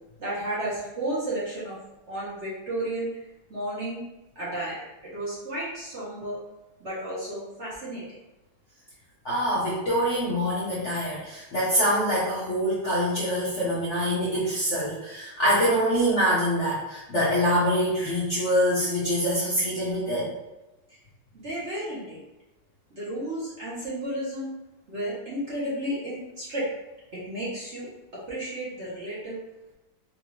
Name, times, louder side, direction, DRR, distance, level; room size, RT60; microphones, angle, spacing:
voice 1, 0.2-1.8 2.1-3.1 3.5-4.0 4.3-4.8 5.1-6.4 6.8-8.0 21.3-22.2 23.0-24.5 24.9-26.6 27.3-29.4, right 1 dB, 40° right, -9 dB, 1.1 m, -32 dB
voice 2, 9.2-20.3, equal, 55° left, -8 dB, 0.8 m, -25 dB
4.1 x 2.6 x 3.0 m, 1.0 s
omnidirectional pair, 2.2 m